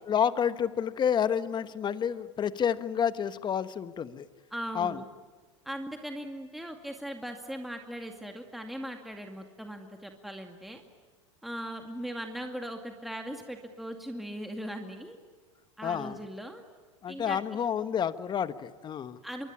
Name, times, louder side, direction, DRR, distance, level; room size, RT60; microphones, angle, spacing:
voice 1, 0.1-4.3 4.7-5.0 15.8-16.2 17.0-19.2, left 8 dB, 30° left, 13 dB, 1.2 m, -29 dB
voice 2, 4.5-5.1 5.6-10.8 11.4-15.2 15.8-16.6 17.1-17.4 19.2-19.5, equal, ahead, 3 dB, 2.2 m, -39 dB
25.0 x 23.5 x 10.0 m, 1.4 s
hypercardioid pair, 95°, 15 cm